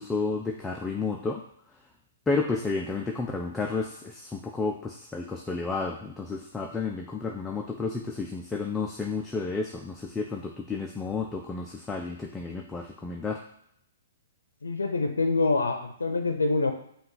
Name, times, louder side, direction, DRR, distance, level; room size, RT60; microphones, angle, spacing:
voice 1, 0.0-1.4 2.3-13.4, left 4 dB, 10° left, 1 dB, 0.4 m, -31 dB
voice 2, 14.6-16.7, left 3 dB, 80° left, 5 dB, 0.6 m, -25 dB
5.3 x 2.4 x 3.9 m, 0.71 s
figure-of-eight pair, 120°, 0 cm